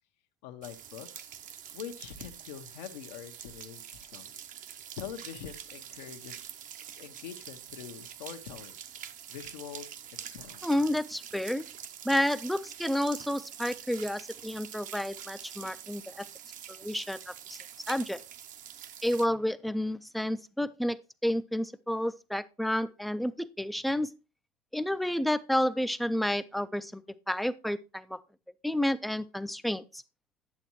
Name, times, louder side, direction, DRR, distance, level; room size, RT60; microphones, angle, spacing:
voice 1, 0.4-1.3 1.7-4.4 4.9-6.4 6.9-8.8 9.3-10.6, left 9 dB, 85° left, 1.0 m, -44 dB
sound 1, 0.6-19.3, right 9 dB, 40° right, 0.7 m, -46 dB
voice 2, 10.6-11.7 12.0-16.2 16.7-17.6 17.9-18.2 19.0-21.0 21.2-24.1 24.7-27.0 27.3-28.2 28.6-30.0, left 1 dB, ahead, 0.3 m, -30 dB
8.7 x 7.3 x 3.0 m
supercardioid pair, 115°, 21 cm